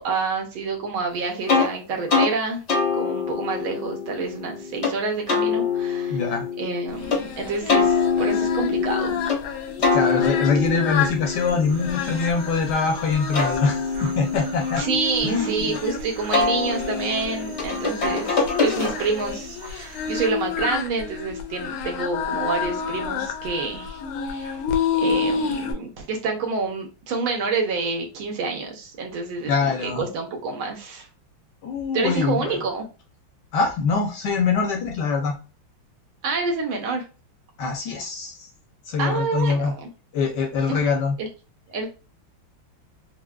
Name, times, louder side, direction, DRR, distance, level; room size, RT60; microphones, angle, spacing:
voice 1, 0.0-2.6 3.0-6.2 6.6-9.2 14.8-24.0 24.2-24.6 25.0-31.1 31.9-32.9 36.2-37.0 39.0-39.9 40.7-40.9 41.2-41.3 41.7-41.9, right 4 dB, 80° right, 2 dB, 1.6 m, -28 dB
sound 1, 1.5-1.7 2.1-2.3 2.7-4.9 5.3-7.2 7.7-9.4 9.8-12.7 13.1-15.8 16.3-19.3, left 5 dB, 55° left, 0.7 m, -25 dB
voice 2, 6.1-6.5 9.9-14.8 15.2-15.8 29.5-30.1 31.6-32.6 33.5-35.4 37.6-38.5 38.9-39.7 40.1-41.2, left 5 dB, 70° left, 2 dB, 1.1 m, -24 dB
Singing, 7.0-25.7, left 5 dB, 85° left, 1.4 m, -30 dB
sound 2, 11.3-20.3, right 3 dB, 60° right, 1.6 m, -45 dB
4.5 x 2.1 x 2.3 m, 0.32 s
omnidirectional pair, 2.2 m